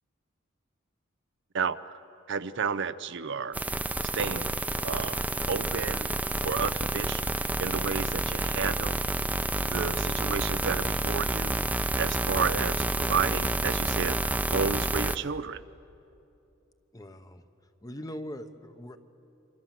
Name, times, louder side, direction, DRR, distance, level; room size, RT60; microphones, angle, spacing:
voice 1, 2.3-3.6 4.1-4.5 4.8-5.2 5.5-6.1 6.4-7.3 7.6-9.0 9.7-15.6, right 6 dB, 60° right, 12 dB, 0.7 m, -31 dB
sound 1, 3.5-15.2, right 2 dB, 10° right, 0.5 m, -29 dB
voice 2, 16.9-17.4 17.8-19.0, equal, 20° left, 9 dB, 1.0 m, -41 dB
27.0 x 25.0 x 7.6 m, 2.8 s
head